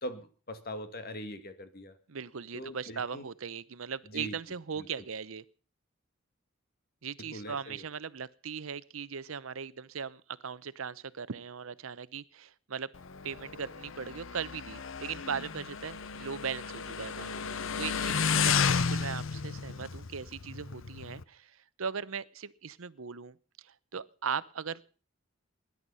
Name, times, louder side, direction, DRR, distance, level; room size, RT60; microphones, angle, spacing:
voice 1, 0.0-2.0 2.5-3.3 4.1-4.4 4.8-4.9 7.2-7.8, equal, 45° left, 9 dB, 1.9 m, -41 dB
voice 2, 2.1-5.4 7.0-12.9 13.2-24.9, right 6 dB, 80° right, 18 dB, 0.8 m, -39 dB
Motorcycle, 12.9-21.2, left 6 dB, 70° left, 0.8 m, -33 dB
20.0 x 11.0 x 5.5 m, 0.40 s
head